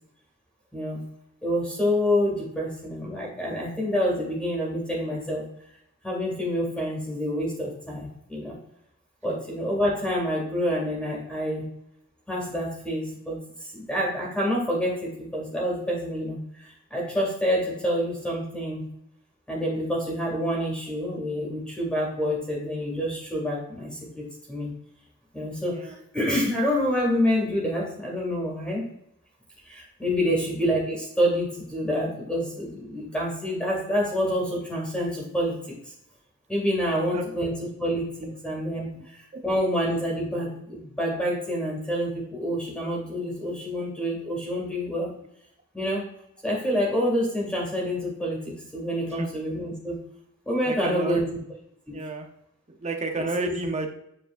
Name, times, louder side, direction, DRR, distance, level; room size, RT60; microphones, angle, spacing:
voice 1, 1.4-5.5 6.0-8.6 9.2-11.7 12.3-18.8 19.5-24.7 25.3-28.8 29.6-35.9 36.5-37.5 37.8-45.1 45.7-46.0 46.4-50.0 50.4-51.2 51.9-52.0 53.4-53.5, equal, 5° left, -3 dB, 2.2 m, -27 dB
voice 2, 36.9-37.2 37.8-37.9 38.2-38.3 38.9-39.1 39.3-39.4 49.0-49.3 50.6-51.4 51.9-52.3 52.7-53.9, right 3 dB, 30° right, 4 dB, 0.8 m, -32 dB
8.5 x 4.7 x 2.5 m, 0.77 s
head